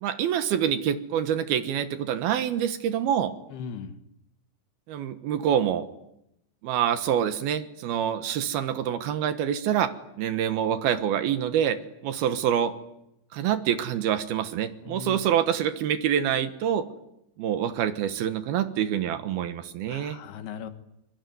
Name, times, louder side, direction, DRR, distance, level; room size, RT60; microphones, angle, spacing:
voice 1, 0.0-3.3 4.9-5.9 6.6-9.9 10.2-12.7 13.3-16.9 17.4-20.2, right 9 dB, 70° right, 10 dB, 3.0 m, -26 dB
voice 2, 3.5-4.0 14.8-15.2 19.9-20.7, left 6 dB, 75° left, 9 dB, 3.3 m, -38 dB
23.5 x 23.0 x 9.4 m, 0.84 s
omnidirectional pair, 4.9 m